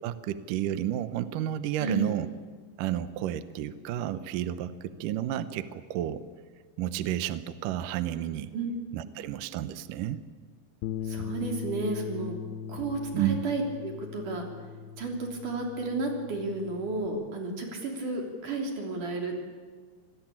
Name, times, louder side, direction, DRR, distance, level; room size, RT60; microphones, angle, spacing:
voice 1, 0.0-2.3 2.8-6.2 6.8-8.5 8.9-10.2 13.1-13.4, right 12 dB, 70° right, 12 dB, 2.1 m, -31 dB
voice 2, 1.8-2.2 8.5-8.7 9.0-9.1 11.0-12.4 12.7-14.5 15.0-19.5, right 2 dB, 50° right, 2 dB, 4.5 m, -32 dB
Bass guitar, 10.8-17.1, left 8 dB, 75° left, 2.6 m, -39 dB
26.0 x 19.5 x 8.7 m, 1.5 s
omnidirectional pair, 4.8 m